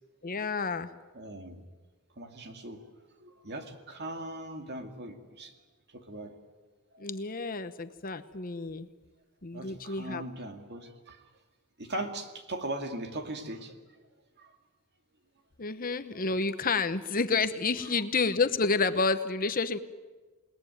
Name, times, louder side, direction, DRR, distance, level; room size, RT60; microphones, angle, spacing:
voice 1, 0.2-0.9 7.0-8.9 9.4-10.2 15.6-19.8, left 4 dB, 40° left, 11 dB, 1.0 m, -29 dB
voice 2, 1.1-1.7 2.2-2.8 3.2-5.5 5.9-6.4 6.9-7.0 9.5-11.3 11.8-14.1 14.4-14.6 16.1-16.2 17.9-18.0, right 1 dB, 50° right, 6 dB, 2.5 m, -40 dB
28.0 x 19.5 x 9.4 m, 1.3 s
head